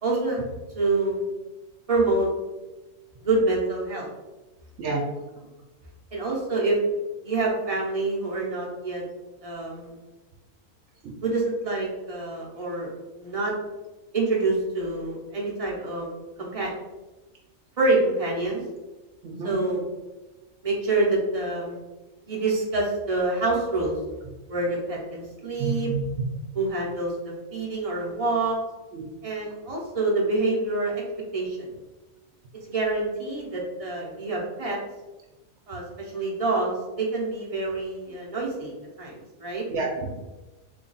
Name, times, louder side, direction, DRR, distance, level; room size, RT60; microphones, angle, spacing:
voice 1, 0.0-0.4 0.7-1.2 1.9-2.3 3.2-4.1 6.1-6.8 7.2-9.0 9.4-10.0 11.2-12.9 13.2-13.5 14.1-16.1 16.4-16.7 17.8-18.6 19.4-19.8 20.6-21.8 22.3-24.0 24.5-25.9 26.5-28.6 29.2-31.0 31.3-31.7 32.6-34.8 35.7-39.6, right 2 dB, 40° right, -3 dB, 0.6 m, -26 dB
voice 2, 19.2-19.6 25.6-26.0 28.9-29.0 39.7-40.1, right 4 dB, 65° right, -1 dB, 0.9 m, -29 dB
3.2 x 2.3 x 3.9 m, 1.1 s
omnidirectional pair, 1.4 m